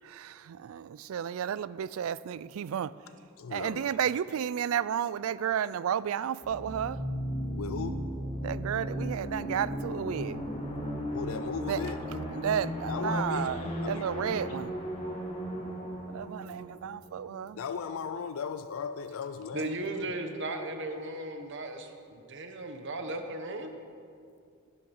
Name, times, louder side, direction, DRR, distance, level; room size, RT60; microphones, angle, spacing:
voice 1, 0.7-2.9 3.5-7.0 8.4-10.4 11.7-11.8 12.3-14.7 16.1-17.6, right 8 dB, 85° right, 0.3 m, -32 dB
voice 2, 3.4-4.0 7.6-8.0 11.1-12.0 12.9-14.1 14.5-14.6 17.6-19.7 20.0-20.3, left 6 dB, 80° left, 0.4 m, -37 dB
sound 1, 6.4-18.0, equal, 30° left, 2.3 m, -36 dB
voice 3, 19.5-23.7, right 2 dB, 60° right, 1.2 m, -36 dB
12.5 x 10.5 x 5.5 m
head